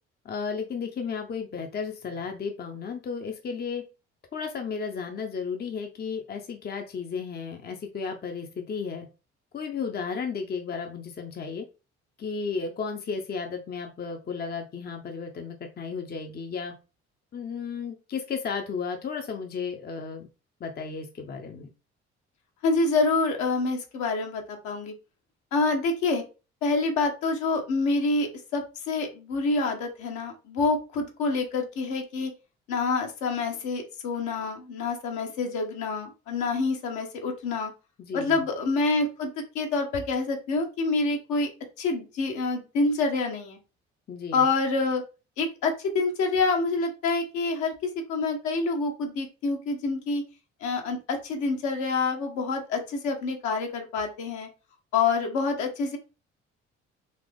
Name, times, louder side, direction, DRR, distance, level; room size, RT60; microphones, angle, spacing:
voice 1, 0.2-3.8 4.3-9.1 9.5-11.7 12.2-16.7 17.3-20.3 20.6-21.7 38.0-38.4 44.1-44.4, left 5 dB, 30° left, 4 dB, 0.7 m, -33 dB
voice 2, 22.6-24.9 25.5-26.2 26.6-32.3 32.7-37.7 38.1-41.5 41.8-43.6 44.3-45.0 45.4-50.2 50.6-54.5 54.9-56.0, left 3 dB, 55° left, 3 dB, 1.1 m, -27 dB
4.2 x 2.9 x 3.4 m, 0.31 s
figure-of-eight pair, 45°, 34 cm